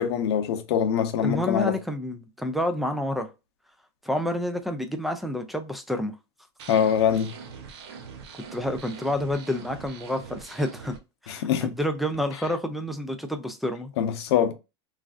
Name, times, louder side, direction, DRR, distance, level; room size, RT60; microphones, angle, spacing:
voice 1, 0.0-1.7 6.7-7.3 11.3-11.7 14.0-14.5, left 8 dB, 85° left, 0.7 m, -23 dB
voice 2, 1.2-3.3 4.0-6.1 8.5-10.9 11.2-13.9, left 1 dB, ahead, 0.3 m, -29 dB
sound 1, 6.6-11.0, right 6 dB, 75° right, 0.8 m, -43 dB
3.2 x 2.4 x 2.4 m
supercardioid pair, 150°, 14 cm